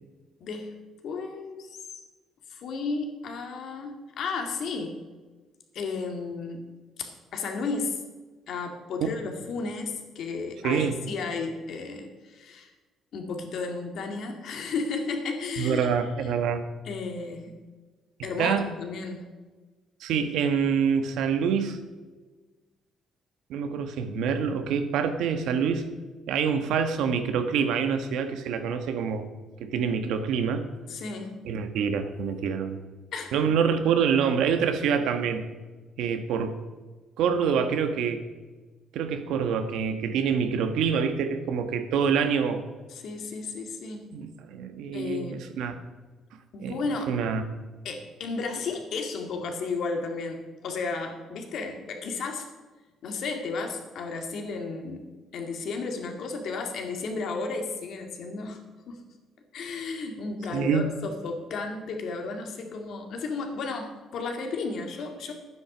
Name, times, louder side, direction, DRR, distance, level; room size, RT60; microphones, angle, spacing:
voice 1, 0.4-0.7 1.0-1.8 2.5-4.9 5.7-6.6 7.0-8.0 8.5-12.7 13.1-16.4 16.8-17.6 18.2-19.2 30.9-31.4 33.1-33.3 42.9-44.1 44.9-45.4 46.5-47.1 47.8-52.5 53.0-55.0 55.3-58.6 58.9-59.0 59.5-65.3, left 4 dB, 60° left, 4 dB, 2.1 m, -33 dB
voice 2, 15.6-16.6 18.4-18.6 20.0-21.8 23.5-25.8 26.3-29.3 29.6-30.7 31.4-32.8 33.3-35.4 36.0-36.6 37.2-38.2 38.9-42.6 44.1-45.7 46.6-46.8 47.1-47.4 60.5-60.9, right 6 dB, 80° right, 8 dB, 1.3 m, -26 dB
11.5 x 9.6 x 6.0 m, 1.3 s
cardioid pair, 155°, 0 cm